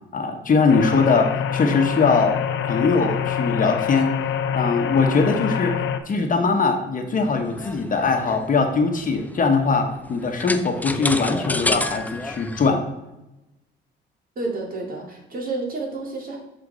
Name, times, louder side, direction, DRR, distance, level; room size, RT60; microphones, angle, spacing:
voice 1, 0.1-2.4 2.6-4.1 4.5-5.8 6.1-12.8, left 4 dB, 45° left, 4 dB, 1.1 m, -21 dB
sound 1, 0.7-6.0, left 8 dB, 70° left, 0.7 m, -26 dB
sound 2, 7.2-12.7, left 2 dB, 10° left, 0.5 m, -30 dB
voice 2, 14.4-16.4, right 3 dB, 45° right, 0 dB, 2.2 m, -30 dB
7.9 x 4.4 x 3.9 m, 0.96 s
cardioid pair, 90°, 20 cm